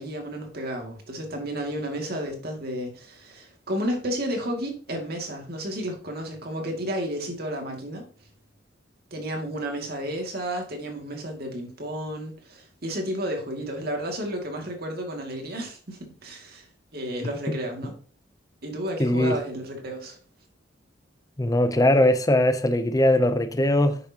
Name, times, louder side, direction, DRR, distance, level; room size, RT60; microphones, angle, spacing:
voice 1, 0.0-8.0 9.1-16.7 16.9-17.9 18.6-20.2, equal, 55° right, 2.4 m, -32 dB
voice 2, 19.0-19.4 21.4-24.0, left 1 dB, 20° left, 0.6 m, -20 dB
9.9 x 6.9 x 2.9 m
head